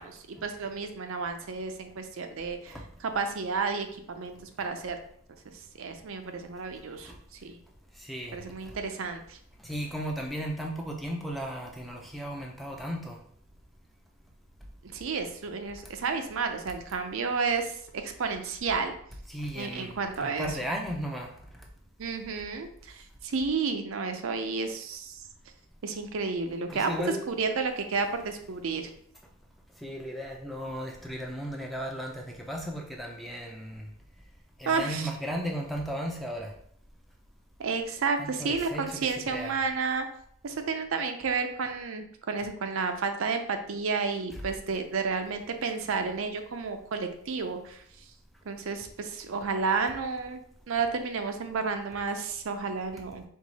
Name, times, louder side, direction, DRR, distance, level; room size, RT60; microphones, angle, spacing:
voice 1, 0.0-5.0 5.5-7.6 8.3-9.4 14.8-18.9 19.6-20.6 22.0-25.2 25.8-26.9 27.3-28.9 34.7-35.1 37.6-40.1 40.4-47.8 48.5-53.2, right 4 dB, 70° right, 6 dB, 0.5 m, -31 dB
voice 2, 7.9-8.8 9.6-13.2 19.3-21.7 26.7-27.2 29.8-33.9 34.6-36.5 38.2-39.5, equal, ahead, 0 dB, 0.5 m, -36 dB
4.5 x 2.4 x 4.1 m, 0.64 s
head